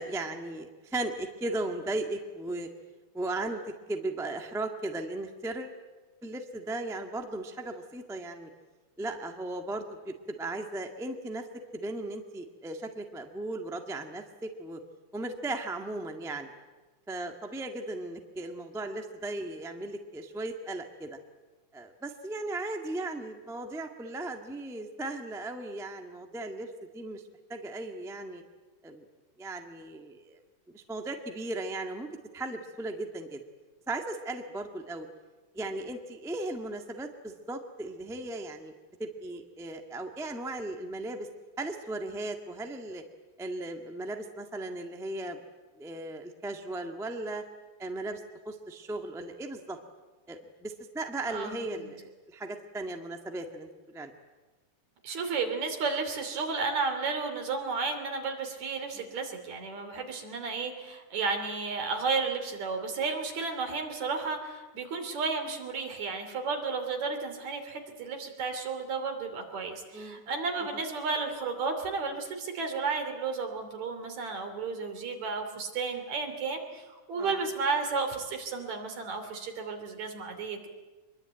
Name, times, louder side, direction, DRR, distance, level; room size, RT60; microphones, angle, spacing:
voice 1, 0.0-2.7 3.1-3.6 3.9-5.7 6.2-8.5 9.0-11.4 11.7-14.8 15.1-16.5 17.1-21.2 21.7-26.7 26.9-27.2 27.5-28.4 28.8-29.1 29.4-30.4 30.7-32.1 32.3-33.4 33.9-35.1 35.5-38.7 39.0-41.3 41.6-43.0 43.4-45.4 45.8-47.4 47.8-49.8 50.3-54.1 58.9-59.1 69.9-70.2 70.7-70.8 77.2-77.4, right 2 dB, ahead, 4 dB, 0.8 m, -37 dB
voice 2, 51.3-51.9 55.0-80.7, right 4 dB, 65° right, 5 dB, 4.2 m, -33 dB
24.5 x 22.5 x 9.0 m, 1.3 s
omnidirectional pair, 3.5 m